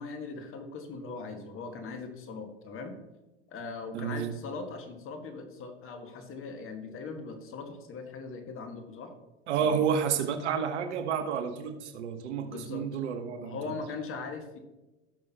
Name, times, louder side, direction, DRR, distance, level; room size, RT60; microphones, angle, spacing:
voice 1, 0.0-3.0 3.5-9.1 9.6-9.8 12.4-12.8 13.4-14.6, left 4 dB, 40° left, 6 dB, 1.8 m, -40 dB
voice 2, 3.9-4.4 9.5-13.8, right 7 dB, 80° right, 8 dB, 1.3 m, -30 dB
17.0 x 6.5 x 3.0 m, 1.1 s
hypercardioid pair, 95°, 34 cm